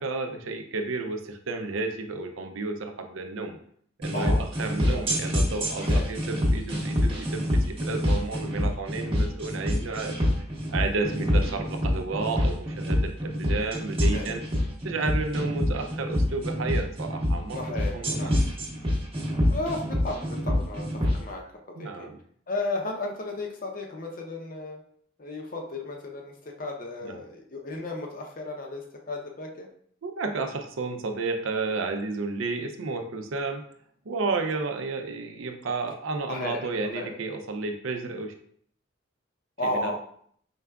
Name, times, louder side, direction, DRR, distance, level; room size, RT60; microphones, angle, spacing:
voice 1, 0.0-3.6 4.0-10.1 10.7-14.4 14.8-17.6 17.9-18.4 21.8-22.2 27.0-27.2 30.0-33.6 34.1-38.3 39.7-40.0, right 3 dB, 75° right, 5 dB, 0.5 m, -32 dB
sound 1, 4.0-21.2, left 1 dB, 25° right, 0.8 m, -26 dB
voice 2, 4.1-4.4 4.9-5.1 5.8-6.1 14.1-14.3 17.5-18.3 19.5-21.4 21.8-22.1 22.5-24.8 25.2-29.7 36.3-37.1 39.6-40.0, left 2 dB, 40° left, 1 dB, 0.6 m, -34 dB
4.7 x 3.5 x 2.3 m, 0.62 s
head